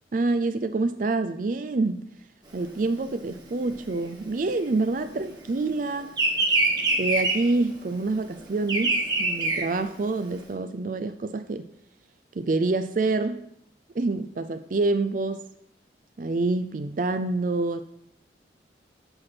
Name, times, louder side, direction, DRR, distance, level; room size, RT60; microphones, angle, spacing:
voice 1, 0.1-2.0 2.5-6.1 7.0-11.7 12.4-13.4 13.9-15.4 16.2-17.8, right 3 dB, 45° right, 10 dB, 0.4 m, -27 dB
Bird vocalization bird call bird song, 2.5-5.4 5.7-10.4, right 2 dB, 25° right, 1.6 m, -25 dB
7.8 x 5.8 x 6.1 m, 0.74 s
head